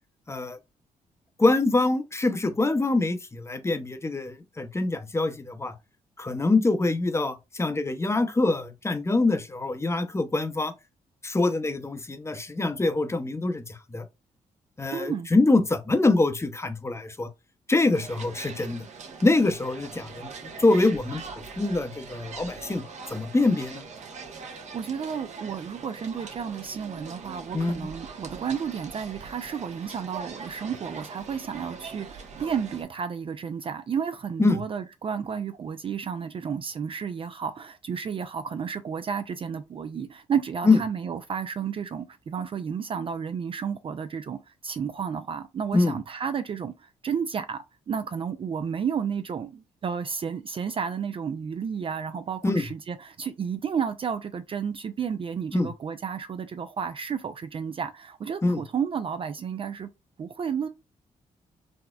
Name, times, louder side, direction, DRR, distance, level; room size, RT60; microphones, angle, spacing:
voice 1, 0.3-0.6 1.4-5.7 6.2-10.7 11.2-14.1 14.8-17.3 17.7-18.9 19.2-20.3 20.6-21.2 21.6-22.8 23.1-23.8 27.5-27.9 34.4-34.6 40.6-40.8 45.7-46.0 52.4-52.7 55.5-55.7 58.4-58.6, left 2 dB, 20° left, 0.6 m, -24 dB
voice 2, 14.9-15.3 24.4-59.9 60.2-60.7, right 7 dB, 40° right, 0.4 m, -32 dB
sound 1, 17.9-32.8, right 5 dB, 55° right, 0.9 m, -42 dB
4.1 x 2.1 x 2.3 m
supercardioid pair, 65°, 14 cm